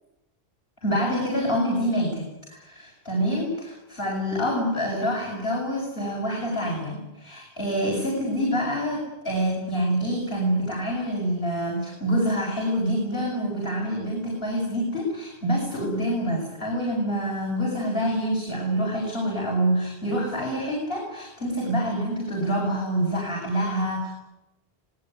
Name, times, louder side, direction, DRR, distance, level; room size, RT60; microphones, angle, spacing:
voice 1, 0.8-2.2 2.5-24.1, equal, 65° left, -1 dB, 7.9 m, -26 dB
25.5 x 20.0 x 9.8 m, 0.95 s
omnidirectional pair, 1.0 m